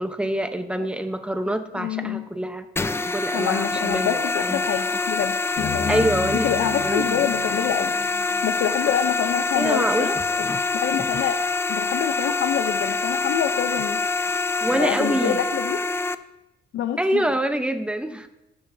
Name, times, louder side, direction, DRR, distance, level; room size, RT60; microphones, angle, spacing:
voice 1, 0.0-2.7 3.1-4.7 5.9-6.5 6.8-7.3 9.5-10.2 14.6-15.4 17.0-18.3, right 1 dB, 5° right, 8 dB, 0.9 m, -25 dB
voice 2, 1.7-2.3 3.3-7.9 8.4-10.1 10.4-10.5 10.7-14.0 14.7-15.8 16.7-17.2, left 10 dB, 75° left, 7 dB, 0.7 m, -26 dB
sound 1, 2.8-16.1, left 3 dB, 10° left, 0.4 m, -25 dB
sound 2, 5.6-9.9, left 4 dB, 35° left, 1.5 m, -34 dB
18.5 x 6.4 x 2.7 m, 0.97 s
cardioid pair, 90°, 20 cm